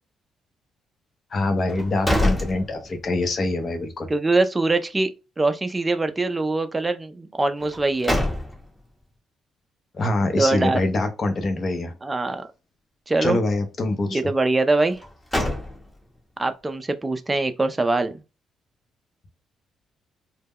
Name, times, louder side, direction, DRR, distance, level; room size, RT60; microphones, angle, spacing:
voice 1, 1.3-4.1 9.9-12.0 13.2-14.3, left 2 dB, 45° left, 0.6 m, -24 dB
sound 1, 1.7-3.3 3.7-3.8 7.6-8.9 14.9-16.2, left 1 dB, 15° left, 0.9 m, -26 dB
voice 2, 4.1-5.1 5.4-8.2 10.4-10.8 12.0-12.5 13.1-13.4 14.1-15.0 16.4-18.2, right 2 dB, 20° right, 0.3 m, -23 dB
2.1 x 2.0 x 3.5 m
cardioid pair, 90°, 0 cm